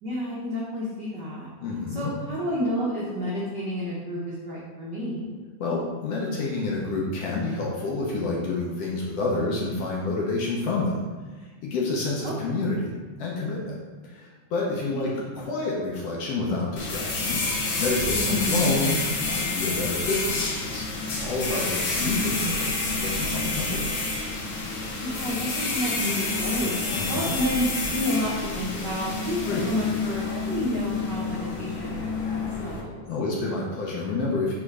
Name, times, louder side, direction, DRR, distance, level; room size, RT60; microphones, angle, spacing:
voice 1, 0.0-1.5 1.9-5.3 9.3-9.4 12.2-12.3 14.9-15.3 18.3-18.8 22.0-22.6 25.0-26.7 27.1-33.1, left 1 dB, 85° right, -7 dB, 0.9 m, -30 dB
voice 2, 1.6-2.1 5.6-11.0 11.4-12.9 13.2-13.8 14.0-17.4 17.8-20.8 21.2-24.0 26.9-27.4 29.5-29.7 33.1-34.6, left 3 dB, 70° left, -3 dB, 1.5 m, -28 dB
sound 1, 16.8-32.8, left 3 dB, 90° left, 1.1 m, -29 dB
5.5 x 4.1 x 4.8 m, 1.4 s
omnidirectional pair, 3.7 m